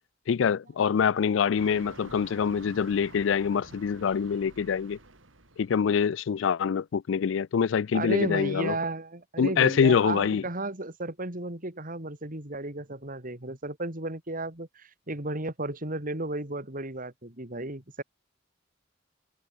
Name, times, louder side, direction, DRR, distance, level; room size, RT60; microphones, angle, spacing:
voice 1, 0.3-5.0 5.6-8.8 9.4-10.4, left 6 dB, 70° left, 0.4 m, -25 dB
sound 1, 1.6-6.1, right 2 dB, 80° right, 4.5 m, -49 dB
voice 2, 7.9-18.0, right 2 dB, 45° right, 3.8 m, -34 dB
head